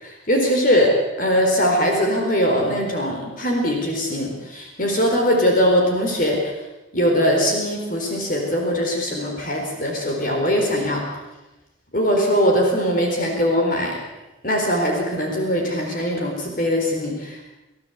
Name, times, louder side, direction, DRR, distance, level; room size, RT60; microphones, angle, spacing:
voice 1, 0.0-6.5 6.9-11.0 11.9-14.0 14.4-17.4, equal, 45° left, 1 dB, 4.3 m, -21 dB
25.5 x 15.5 x 8.2 m, 1.0 s
head